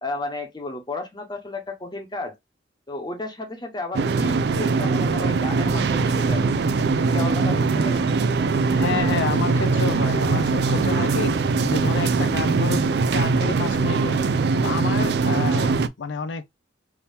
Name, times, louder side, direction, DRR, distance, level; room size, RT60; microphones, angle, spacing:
voice 1, 0.0-2.3 2.9-6.4 7.0-8.0, left 2 dB, 25° left, 1.0 m, -33 dB
sound 1, 3.9-15.9, right 4 dB, 60° right, 0.4 m, -21 dB
voice 2, 8.7-12.8 13.1-14.2 14.6-16.6, left 5 dB, 90° left, 0.4 m, -29 dB
3.5 x 2.9 x 2.6 m
head